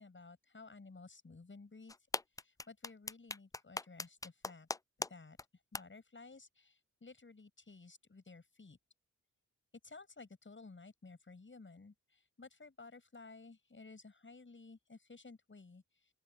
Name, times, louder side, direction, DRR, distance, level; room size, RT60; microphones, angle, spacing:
voice 1, 0.0-1.9 2.4-4.7 5.1-5.4 5.7-8.8 9.8-16.1, left 3 dB, 40° left, 7.9 m, -55 dB
sound 1, 1.9-5.1 5.4-5.5 5.7-5.8, left 3 dB, 10° left, 0.3 m, -39 dB
open air
cardioid pair, 70°, 31 cm